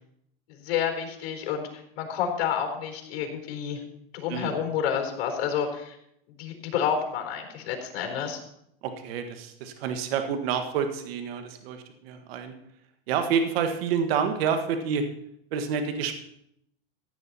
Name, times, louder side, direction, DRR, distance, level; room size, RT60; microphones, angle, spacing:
voice 1, 0.5-1.7 2.0-3.8 4.1-6.0 6.4-8.4, left 8 dB, 60° left, 3 dB, 4.1 m, -29 dB
voice 2, 8.8-12.5 13.1-15.0 15.5-16.1, right 7 dB, 75° right, 7 dB, 1.6 m, -28 dB
15.5 x 9.4 x 4.2 m, 0.75 s
supercardioid pair, 135°, 31 cm